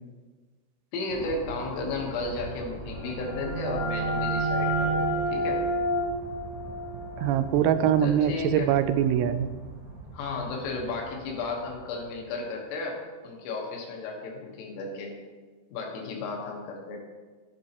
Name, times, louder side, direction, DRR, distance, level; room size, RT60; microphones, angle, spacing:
voice 1, 0.9-5.7 8.0-8.8 10.1-13.0 13.2-15.1 15.7-17.0, left 3 dB, 75° left, 0 dB, 3.8 m, -34 dB
sound 1, 1.1-12.7, right 2 dB, 70° right, 4.7 m, -43 dB
sound 2, 2.9-8.5, right 1 dB, 55° right, 4.1 m, -30 dB
voice 2, 7.2-9.5, right 10 dB, 90° right, 11 dB, 3.3 m, -23 dB
11.0 x 9.2 x 2.9 m, 1.4 s
omnidirectional pair, 6.0 m